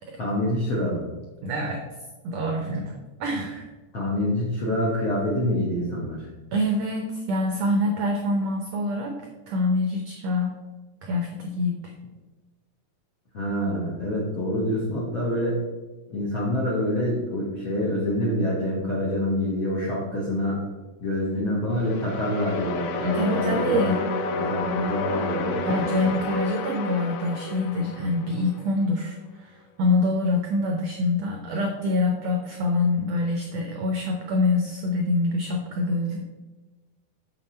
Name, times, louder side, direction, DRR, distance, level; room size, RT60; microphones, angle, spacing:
voice 1, 0.2-1.0 3.9-6.2 13.3-15.6 16.1-20.6 21.0-24.0 24.3-25.8 26.1-26.2, left 1 dB, 65° left, -5 dB, 1.2 m, -26 dB
voice 2, 1.4-1.8 2.2-3.7 6.5-9.2 9.5-10.5 11.0-11.8 23.0-24.0 25.6-36.2, left 2 dB, 80° right, 2 dB, 1.5 m, -25 dB
sound 1, 21.7-28.7, left 3 dB, 85° left, 2.4 m, -30 dB
7.1 x 5.9 x 4.3 m, 1.2 s
omnidirectional pair, 3.9 m